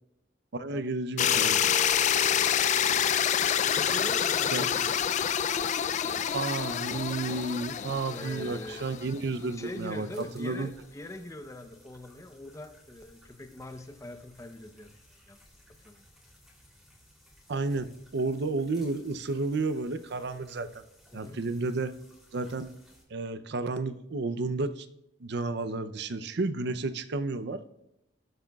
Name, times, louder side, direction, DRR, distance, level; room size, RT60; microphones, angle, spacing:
voice 1, 0.5-1.6 4.5-4.7 6.3-10.7 17.5-20.8 21.1-21.9 22.3-22.7 23.1-24.9 25.2-27.6, right 3 dB, 65° right, 12 dB, 0.6 m, -32 dB
sound 1, 1.2-9.2, left 9 dB, 40° left, 0.4 m, -27 dB
voice 2, 3.7-5.2 6.0-6.3 6.7-6.9 8.1-8.9 9.5-14.9 15.3-15.4 15.8-16.0 21.1-21.4, left 1 dB, 15° left, 8 dB, 0.7 m, -43 dB
sound 2, 6.7-23.0, left 1 dB, ahead, 3.0 m, -58 dB
19.0 x 7.8 x 2.3 m, 0.84 s
head